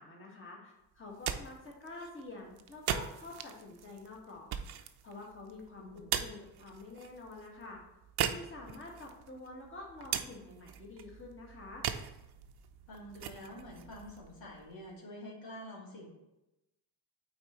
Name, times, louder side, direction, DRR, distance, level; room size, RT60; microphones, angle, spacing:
voice 1, 0.0-4.5 5.0-7.8 8.3-11.8, left 2 dB, 25° left, -2 dB, 1.6 m, -48 dB
sound 1, 1.0-14.9, right 9 dB, 50° right, 0.6 m, -41 dB
voice 2, 5.8-6.2 12.9-16.1, left 1 dB, 70° left, -3 dB, 1.9 m, -47 dB
8.5 x 4.3 x 3.0 m, 0.95 s
cardioid pair, 85°, 48 cm